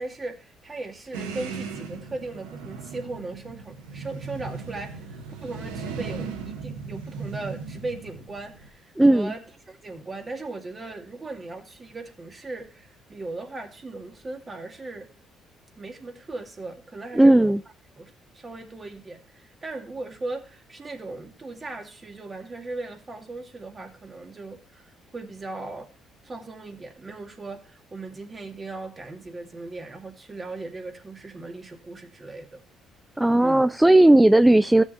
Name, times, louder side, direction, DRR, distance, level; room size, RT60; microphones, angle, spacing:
voice 1, 0.0-15.1 15.8-17.5 18.0-25.9 26.2-32.6 33.4-33.7, right 2 dB, 30° right, 4 dB, 2.2 m, -38 dB
sound 1, 1.1-8.7, right 5 dB, 90° right, 1.0 m, -37 dB
voice 2, 9.0-9.3 17.2-17.6 33.2-34.8, right 1 dB, 10° right, 14 dB, 0.3 m, -16 dB
15.5 x 7.2 x 2.7 m, 0.36 s
hypercardioid pair, 55°, 0 cm